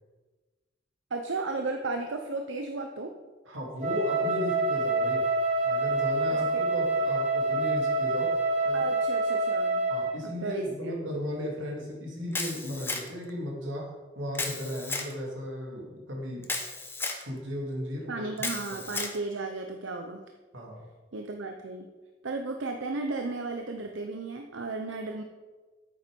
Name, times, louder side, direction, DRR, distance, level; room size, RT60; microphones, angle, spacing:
voice 1, 1.1-3.1 6.4-6.6 8.7-9.8 10.4-10.9 18.1-20.2 21.1-21.9 22.2-25.2, right 3 dB, 70° right, 4 dB, 0.7 m, -34 dB
voice 2, 3.5-5.3 5.6-8.8 9.9-16.5 17.2-18.3 18.7-18.8 20.5-20.8, equal, 90° right, -1 dB, 2.7 m, -35 dB
Wind instrument woodwind instrument, 3.8-10.2, right 2 dB, 40° right, 3.1 m, -27 dB
Camera, 12.3-13.3 14.3-15.1 16.4-17.2 18.4-19.2, left 3 dB, 10° left, 1.1 m, -33 dB
8.8 x 8.2 x 5.3 m, 1.3 s
head